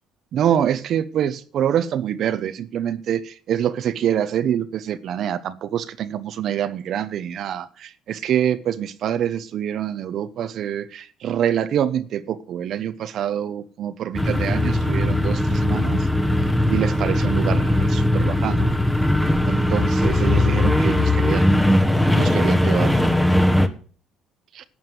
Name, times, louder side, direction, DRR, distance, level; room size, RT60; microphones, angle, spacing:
voice 1, 0.3-16.1 16.7-18.7 19.4-21.8 22.1-23.0 24.5-24.6, right 10 dB, 60° right, 0.9 m, -25 dB
sound 1, 14.1-23.7, left 1 dB, 5° left, 1.5 m, -19 dB
12.0 x 7.3 x 7.8 m
cardioid pair, 95°, 0 cm